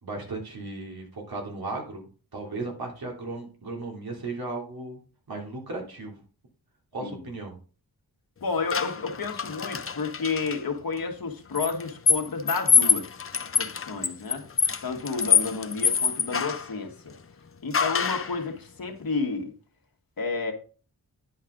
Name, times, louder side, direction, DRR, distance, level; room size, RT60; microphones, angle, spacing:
voice 1, 0.0-2.0 2.3-5.0 5.3-6.2 6.9-7.5, right 2 dB, 70° right, 0 dB, 3.3 m, -35 dB
voice 2, 8.4-13.1 13.6-14.4 14.8-17.1 17.6-19.5 20.2-20.5, left 4 dB, 65° left, 3 dB, 1.9 m, -31 dB
sound 1, 8.7-10.6 11.6-16.7 17.7-18.4, left 6 dB, 35° left, 0.7 m, -25 dB
10.5 x 5.5 x 3.9 m, 0.37 s
wide cardioid pair, 75°, 38 cm